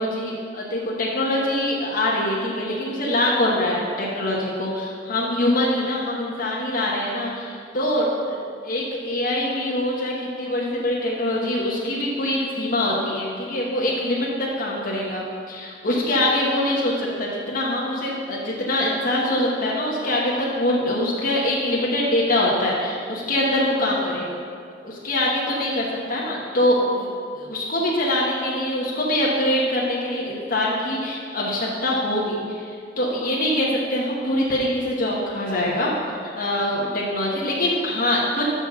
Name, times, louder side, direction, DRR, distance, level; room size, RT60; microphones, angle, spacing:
voice 1, 0.0-8.4 8.6-24.4 24.8-38.5, left 1 dB, 50° left, -4 dB, 1.2 m, -24 dB
6.2 x 6.2 x 6.7 m, 2.2 s
head